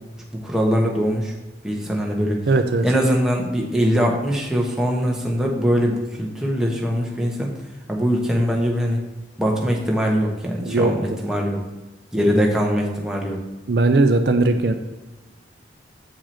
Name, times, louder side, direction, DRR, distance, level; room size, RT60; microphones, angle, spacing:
voice 1, 0.4-1.3 1.6-2.4 2.8-7.5 7.9-9.0 9.4-11.6 12.1-13.4, equal, 5° right, -1 dB, 1.1 m, -22 dB
voice 2, 2.5-2.9 10.6-11.2 13.7-14.7, right 2 dB, 60° right, 7 dB, 0.5 m, -18 dB
7.7 x 4.8 x 4.3 m, 1.2 s
head